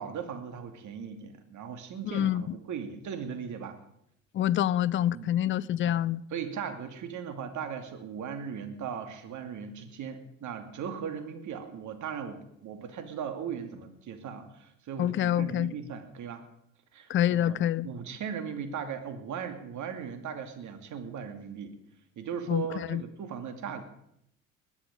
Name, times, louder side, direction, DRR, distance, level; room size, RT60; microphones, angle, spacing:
voice 1, 0.0-3.8 5.1-5.3 5.8-6.0 6.3-16.4 16.9-21.7 22.2-23.8, right 7 dB, 45° right, 2.6 m, -38 dB
voice 2, 2.0-2.4 4.3-6.2 15.0-15.7 17.1-17.9 22.5-22.6 22.9-23.0, left 11 dB, 30° left, 0.5 m, -26 dB
20.5 x 10.0 x 5.3 m
hypercardioid pair, 65°, 39 cm